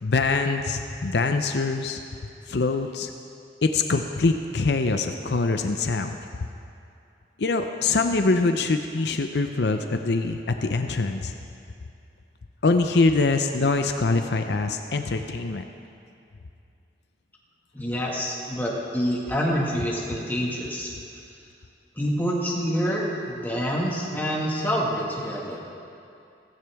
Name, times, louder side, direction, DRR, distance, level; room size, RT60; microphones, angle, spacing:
voice 1, 0.0-2.0 2.5-3.1 3.6-6.2 7.4-11.3 12.6-15.7, left 3 dB, 70° left, 6 dB, 0.6 m, -24 dB
voice 2, 17.7-20.9 22.0-25.6, equal, 10° left, -4 dB, 1.8 m, -27 dB
15.5 x 15.0 x 3.5 m, 2.5 s
head